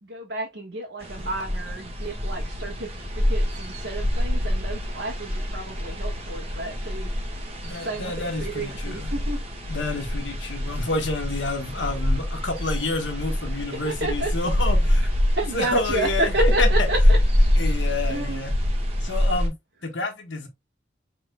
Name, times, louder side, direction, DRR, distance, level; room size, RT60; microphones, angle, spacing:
voice 1, 0.0-7.1 7.8-8.1 8.4-9.4 13.7-14.3 15.4-17.0 17.3-18.4, right 2 dB, 75° right, 1.3 m, -31 dB
sound 1, 1.0-19.5, left 1 dB, 35° right, 1.4 m, -25 dB
voice 2, 7.6-9.1 9.7-15.1 15.5-16.7 17.6-18.5 19.0-19.5 19.8-20.5, left 2 dB, 85° left, 1.3 m, -29 dB
6.2 x 3.7 x 2.3 m
head